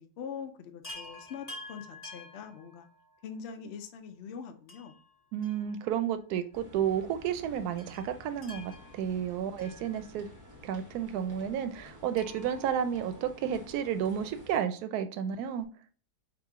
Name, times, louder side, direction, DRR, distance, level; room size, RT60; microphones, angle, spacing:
voice 1, 0.0-2.9 3.2-5.0, left 7 dB, 70° left, 0.6 m, -43 dB
Chime, 0.8-3.3 4.7-6.2 6.5-6.6 7.8-10.5 12.1-13.8 15.3-15.4 15.6-15.7, left 2 dB, 30° left, 0.9 m, -49 dB
voice 2, 5.3-10.3 10.6-15.7, right 9 dB, 75° right, 1.1 m, -32 dB
sound 1, 6.5-14.6, left 2 dB, 15° right, 0.6 m, -52 dB
4.9 x 2.6 x 3.6 m
omnidirectional pair, 1.7 m